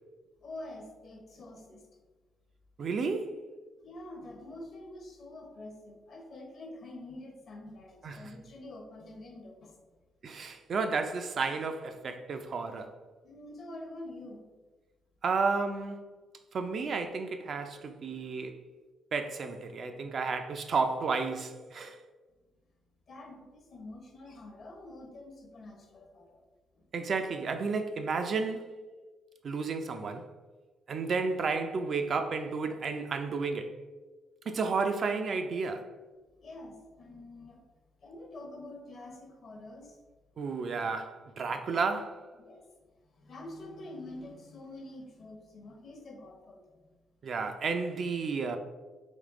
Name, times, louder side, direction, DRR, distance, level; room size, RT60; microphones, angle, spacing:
voice 1, 0.4-1.8 3.8-9.8 13.2-14.5 23.1-26.4 26.7-26.8 36.4-37.6 38.0-40.0 42.4-42.7 43.1-46.9, left 1 dB, 55° left, 0.9 m, -46 dB
voice 2, 2.8-3.3 8.0-8.2 10.2-12.9 15.2-16.0 16.5-18.6 19.1-22.0 26.9-28.7 29.4-30.3 30.9-33.7 34.5-35.9 40.4-42.2 47.2-48.6, right 4 dB, 50° right, 0.4 m, -32 dB
3.6 x 3.2 x 3.6 m
cardioid pair, 95°, 0 cm